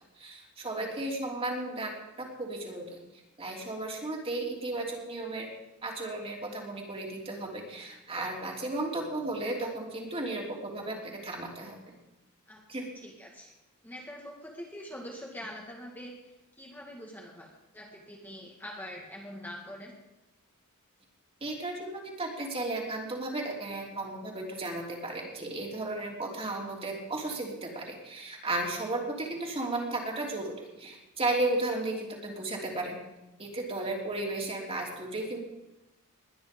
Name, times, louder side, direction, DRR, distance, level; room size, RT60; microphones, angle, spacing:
voice 1, 0.2-3.0 3.4-5.5 5.8-12.0 12.7-12.9 21.4-33.0 33.4-35.4, right 2 dB, 25° right, -1 dB, 3.2 m, -34 dB
voice 2, 12.9-13.5 13.8-19.9, equal, 10° left, -1 dB, 1.9 m, -44 dB
21.0 x 9.7 x 5.3 m, 1.0 s
head